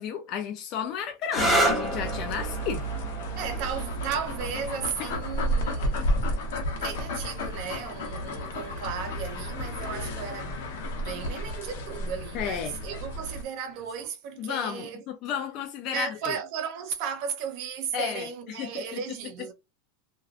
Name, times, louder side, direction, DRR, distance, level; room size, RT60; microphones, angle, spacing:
voice 1, 0.0-2.9 5.0-5.1 12.3-12.7 14.4-16.4 17.9-19.0, left 8 dB, 40° left, 0.4 m, -33 dB
sound 1, 1.2-8.7 9.7-10.2 13.7-14.1, right 1 dB, ahead, 0.7 m, -32 dB
sound 2, 1.3-13.4, equal, 75° left, 0.8 m, -32 dB
voice 2, 3.3-6.0 6.8-15.0 15.9-19.5, right 7 dB, 50° right, 0.5 m, -35 dB
2.4 x 2.2 x 2.4 m
supercardioid pair, 140°, 0 cm